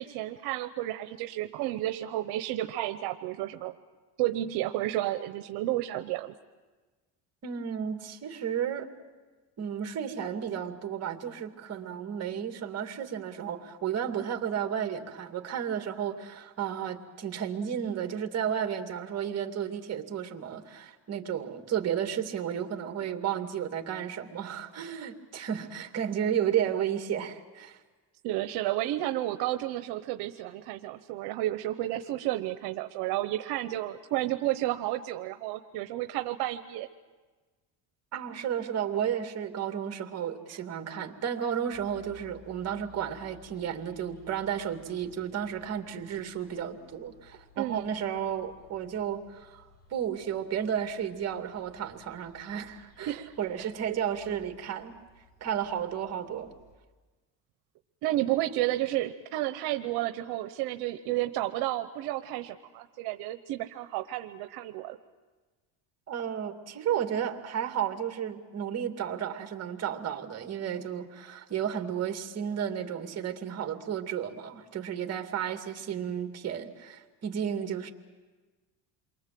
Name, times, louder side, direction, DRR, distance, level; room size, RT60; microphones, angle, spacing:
voice 1, 0.0-3.8 4.2-6.3 28.2-36.9 40.5-40.6 47.6-48.0 53.1-53.7 58.0-65.0, right 15 dB, 80° right, 8 dB, 1.0 m, -31 dB
voice 2, 7.4-8.9 9.6-27.8 38.1-49.6 49.9-55.0 55.4-56.5 66.1-77.9, right 9 dB, 40° right, 5 dB, 2.4 m, -33 dB
sound 1, 41.7-56.8, left 4 dB, 25° left, 5.1 m, -58 dB
28.5 x 23.5 x 7.7 m, 1.3 s
cardioid pair, 120°, 38 cm